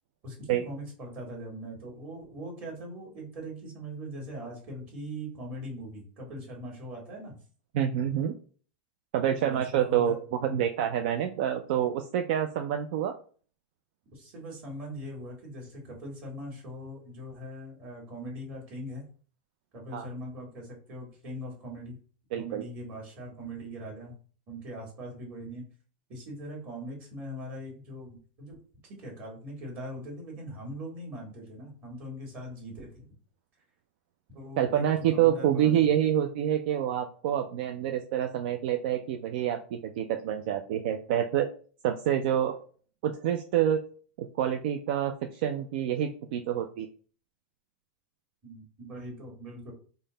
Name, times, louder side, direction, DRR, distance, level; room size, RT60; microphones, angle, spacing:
voice 1, 0.2-7.3 9.4-10.5 14.1-19.1 19.7-22.0 22.4-24.1 24.5-25.6 26.1-28.6 28.8-33.1 34.3-35.8 48.4-49.7, equal, 35° right, -1 dB, 1.6 m, -41 dB
voice 2, 7.7-8.3 9.1-13.1 19.9-20.1 22.3-22.6 34.6-41.5 41.8-42.6 43.0-43.8 44.2-46.9, right 10 dB, 65° right, 6 dB, 0.4 m, -27 dB
3.8 x 2.1 x 3.8 m, 0.42 s
supercardioid pair, 155°, 5 cm